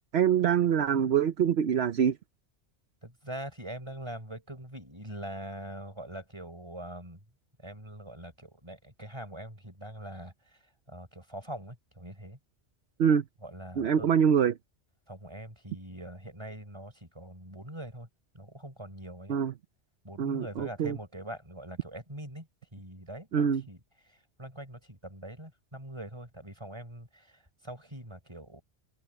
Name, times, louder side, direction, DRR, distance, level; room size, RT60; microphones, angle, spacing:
voice 1, 0.1-2.2 13.0-13.2 13.8-14.5 19.3-19.5 20.2-21.0 23.3-23.6, right 8 dB, 70° right, 1.0 m, -24 dB
voice 2, 3.0-7.2 7.6-10.6 10.9-12.4 13.4-14.1 15.1-18.1 18.3-19.4 20.0-28.6, right 1 dB, 25° right, 5.4 m, -43 dB
open air
omnidirectional pair, 1.2 m